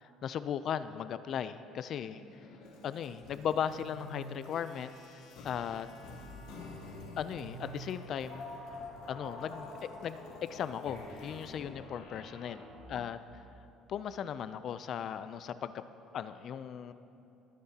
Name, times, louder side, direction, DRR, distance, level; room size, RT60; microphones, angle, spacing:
voice 1, 0.0-2.2 2.8-5.9 7.2-8.5 9.1-13.2 13.9-15.8 16.1-16.9, left 8 dB, 50° left, 13 dB, 0.4 m, -37 dB
sound 1, 2.0-13.2, left 2 dB, 85° left, 2.5 m, -47 dB
20.5 x 9.6 x 2.8 m, 2.9 s
cardioid pair, 135°, 0 cm